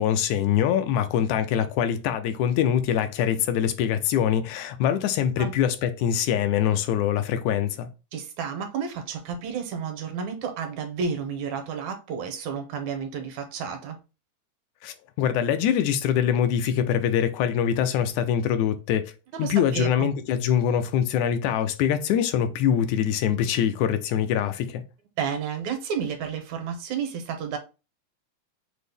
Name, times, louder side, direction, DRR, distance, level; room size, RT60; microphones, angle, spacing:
voice 1, 0.0-7.9 14.8-19.1 19.4-24.8, left 9 dB, 85° left, 1.9 m, -24 dB
voice 2, 8.1-14.0 19.3-20.1 25.2-27.6, right 6 dB, 80° right, 2.0 m, -31 dB
6.0 x 2.1 x 3.4 m
omnidirectional pair, 3.4 m